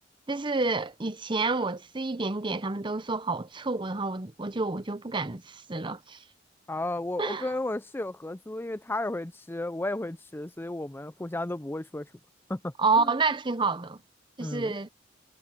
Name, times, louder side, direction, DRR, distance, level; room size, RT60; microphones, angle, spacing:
voice 1, 0.3-6.2 7.2-7.5 12.8-14.0 14.4-14.9, right 3 dB, 25° right, 0.8 m, -29 dB
voice 2, 6.7-12.1 12.5-13.1 14.4-14.8, left 2 dB, 10° left, 0.5 m, -33 dB
head